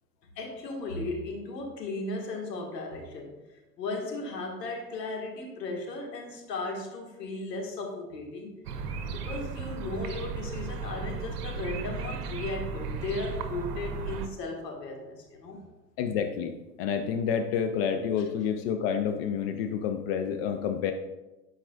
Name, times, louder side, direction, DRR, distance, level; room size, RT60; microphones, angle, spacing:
voice 1, 0.4-3.3 3.8-8.5 9.1-15.6, left 2 dB, 75° left, 1 dB, 1.6 m, -36 dB
sound 1, 8.6-14.3, right 5 dB, 65° right, 0.8 m, -35 dB
voice 2, 16.0-16.5 16.8-20.9, left 7 dB, 40° left, 7 dB, 0.5 m, -29 dB
8.9 x 4.8 x 2.2 m, 1.1 s
hypercardioid pair, 100°, 49 cm